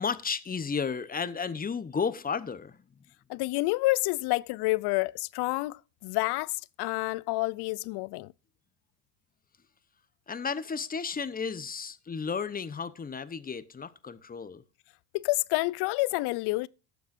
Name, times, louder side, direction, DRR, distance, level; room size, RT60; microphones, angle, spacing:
voice 1, 0.0-2.8 10.3-14.6, left 5 dB, 20° left, 0.9 m, -33 dB
voice 2, 3.3-6.5 6.8-8.3 15.1-16.7, left 22 dB, 55° left, 0.5 m, -28 dB
18.0 x 7.1 x 2.6 m
hypercardioid pair, 85°, 48 cm